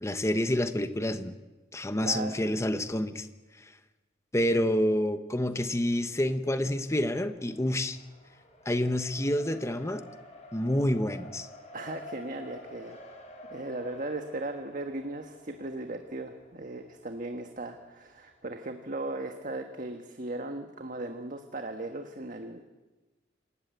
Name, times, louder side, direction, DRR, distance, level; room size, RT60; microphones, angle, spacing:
voice 1, 0.0-1.4 1.7-3.3 4.3-8.0 8.6-10.0 10.5-11.5, left 1 dB, 15° left, 9 dB, 1.1 m, -28 dB
voice 2, 2.0-2.4 11.7-13.0 13.5-22.6, right 2 dB, 45° right, 5 dB, 1.4 m, -37 dB
Race car auto racing, 5.8-18.4, left 1 dB, 40° left, 4.8 m, -51 dB
27.0 x 14.5 x 9.3 m, 1.2 s
head